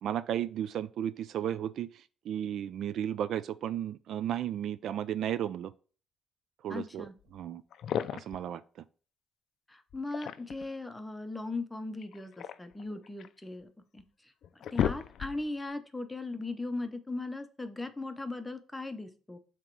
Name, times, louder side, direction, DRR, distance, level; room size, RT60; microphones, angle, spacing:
voice 1, 0.0-1.9 2.3-5.7 6.6-7.6 8.1-8.6, right 10 dB, 60° right, 0.3 m, -34 dB
voice 2, 6.7-7.1 9.7-14.0 14.7-19.4, left 2 dB, 10° left, 0.6 m, -38 dB
sound 1, 7.3-7.4 7.7-8.5 9.9-10.7 12.0-13.4 14.0-14.1 14.4-15.6, left 9 dB, 55° left, 0.4 m, -34 dB
7.2 x 3.0 x 4.6 m
cardioid pair, 140°, 0 cm